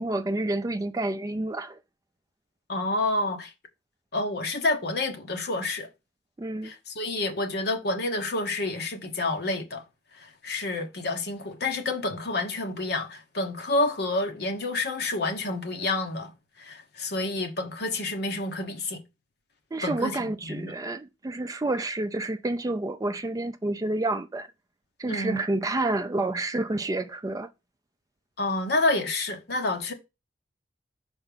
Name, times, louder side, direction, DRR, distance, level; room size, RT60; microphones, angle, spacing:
voice 1, 0.0-1.8 6.4-6.7 19.7-24.5 25.0-27.5, right 2 dB, 20° right, 0.4 m, -29 dB
voice 2, 2.7-3.5 4.1-5.9 6.6-9.8 10.2-16.3 16.6-19.0 19.8-20.7 25.1-25.4 28.4-29.9, left 2 dB, 60° left, 1.1 m, -29 dB
5.7 x 4.4 x 3.8 m
head